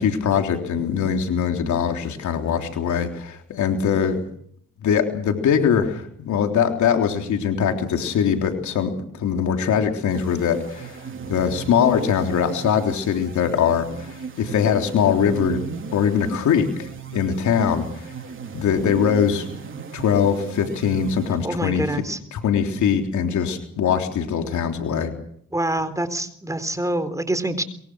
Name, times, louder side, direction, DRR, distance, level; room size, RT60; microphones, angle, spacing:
voice 1, 0.0-4.2 4.8-15.6 15.9-18.1 18.5-19.5 19.9-21.9 22.3-25.1, left 7 dB, 75° left, 4 dB, 3.6 m, -22 dB
sound 1, 10.1-21.9, right 6 dB, 40° right, 3.3 m, -36 dB
voice 2, 21.4-22.2 25.5-27.6, right 1 dB, 10° right, 12 dB, 3.9 m, -26 dB
24.0 x 22.5 x 6.4 m, 0.64 s
cardioid pair, 90°, 30 cm